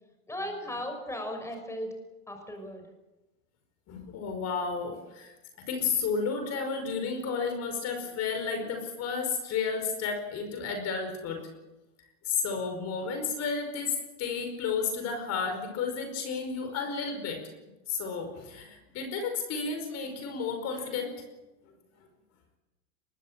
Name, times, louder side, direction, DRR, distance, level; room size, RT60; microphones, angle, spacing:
voice 1, 0.3-1.9 2.3-2.9, left 1 dB, 5° left, 4 dB, 6.1 m, -36 dB
voice 2, 3.9-5.3 5.7-11.4 12.2-21.2, left 5 dB, 40° left, 6 dB, 5.2 m, -32 dB
24.0 x 21.0 x 7.4 m, 1.1 s
hypercardioid pair, 115°, 39 cm